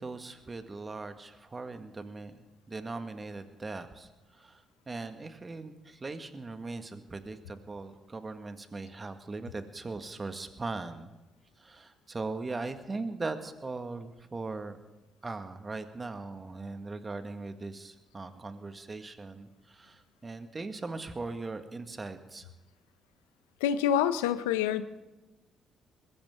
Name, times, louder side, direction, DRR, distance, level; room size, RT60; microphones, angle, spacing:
voice 1, 0.0-11.1 11.6-14.8 15.2-22.5, right 3 dB, 30° right, 8 dB, 1.8 m, -39 dB
voice 2, 23.6-24.9, left 9 dB, 85° left, 13 dB, 0.7 m, -27 dB
22.0 x 15.0 x 3.8 m, 1.1 s
hypercardioid pair, 50°, 0 cm